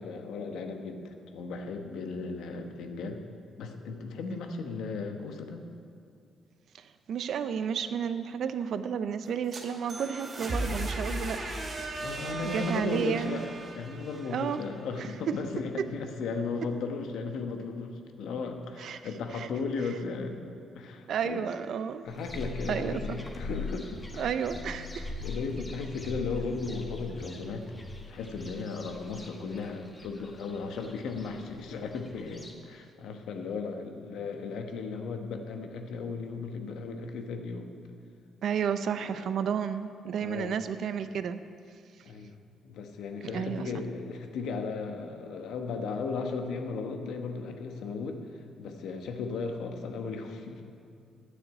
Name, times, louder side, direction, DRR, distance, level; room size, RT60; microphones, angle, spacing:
voice 1, 0.0-3.2 3.6-5.6 12.0-13.5 13.7-20.4 20.8-21.5 22.0-24.7 25.2-27.6 28.1-37.7 39.0-39.2 40.2-40.6 42.0-42.4 42.6-50.6, left 4 dB, 80° left, 5 dB, 1.0 m, -36 dB
voice 2, 6.8-11.4 12.4-13.4 14.3-14.6 15.0-15.4 18.8-19.0 19.3-19.5 21.1-22.0 22.7-23.2 24.2-25.1 38.4-41.4 43.3-43.7, right 7 dB, 70° right, 11 dB, 0.5 m, -32 dB
sound 1, 9.3-15.1, right 1 dB, 40° right, 2.3 m, -37 dB
sound 2, 22.1-32.5, left 2 dB, 20° left, 1.5 m, -41 dB
9.5 x 6.7 x 8.7 m, 2.3 s
cardioid pair, 75°, 0 cm